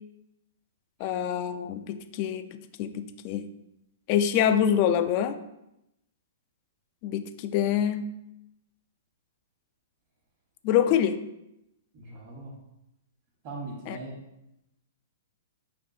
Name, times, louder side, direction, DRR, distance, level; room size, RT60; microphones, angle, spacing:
voice 1, 1.0-3.5 4.1-5.4 7.0-8.1 10.6-11.2 13.9-14.0, left 9 dB, 45° left, 10 dB, 0.3 m, -25 dB
voice 2, 11.9-12.5 13.4-14.1, right 2 dB, 45° right, -6 dB, 1.1 m, -40 dB
5.2 x 2.6 x 2.7 m, 0.87 s
hypercardioid pair, 130°, 0 cm